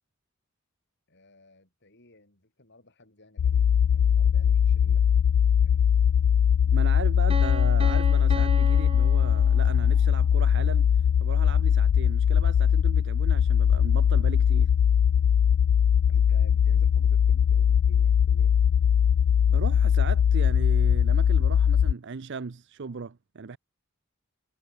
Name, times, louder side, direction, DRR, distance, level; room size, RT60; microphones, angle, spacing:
voice 1, 1.1-5.9 16.1-18.5, left 2 dB, 55° left, 6.3 m, -54 dB
sound 1, 3.4-21.9, left 8 dB, 80° left, 0.3 m, -21 dB
voice 2, 6.7-10.9 11.2-14.7 19.5-23.6, right 5 dB, 60° right, 0.6 m, -37 dB
Piano, 7.3-10.1, right 2 dB, 30° right, 1.7 m, -36 dB
head